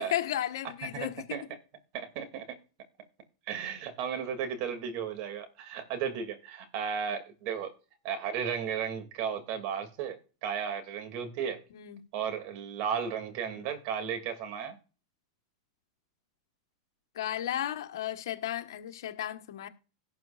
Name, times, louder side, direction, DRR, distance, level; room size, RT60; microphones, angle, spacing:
voice 1, 0.0-1.2 11.7-12.0 13.5-13.7 17.1-19.7, left 11 dB, 70° left, 1.5 m, -34 dB
voice 2, 0.8-1.4 1.9-2.5 3.5-7.7 8.0-11.6 12.1-14.8, right 7 dB, 50° right, 2.8 m, -34 dB
18.0 x 7.5 x 2.6 m
hypercardioid pair, 110°, 2 cm